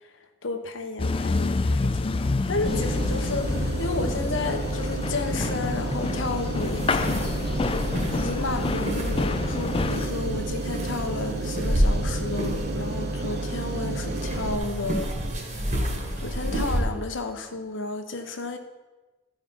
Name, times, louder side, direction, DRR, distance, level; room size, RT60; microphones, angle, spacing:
voice 1, 0.0-7.3 8.2-15.1 15.4-15.8 16.2-18.6, left 3 dB, 70° left, 6 dB, 1.1 m, -32 dB
sound 1, 1.0-10.1, left 3 dB, 30° left, 0.4 m, -28 dB
sound 2, 2.7-14.6, right 2 dB, 55° right, 0.9 m, -31 dB
sound 3, 6.6-16.8, equal, 35° right, 1.8 m, -30 dB
14.0 x 5.0 x 5.6 m, 1.2 s
head